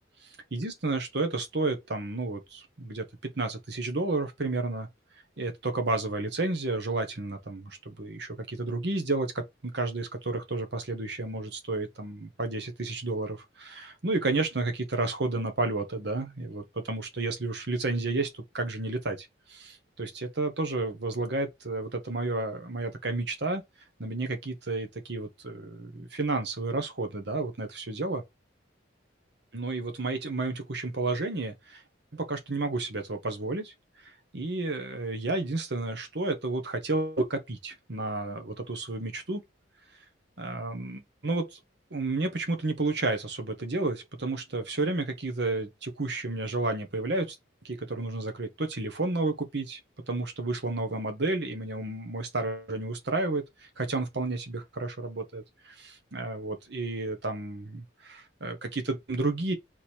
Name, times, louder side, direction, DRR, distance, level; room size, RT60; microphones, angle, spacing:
voice 1, 0.5-3.1 3.3-4.9 5.4-23.6 24.0-28.2 29.5-31.8 32.1-33.7 34.3-39.4 40.4-41.6 41.9-47.4 47.6-49.8 50.1-53.4 53.8-59.5, right 2 dB, 55° right, 1.0 m, -31 dB
3.7 x 3.1 x 4.3 m
head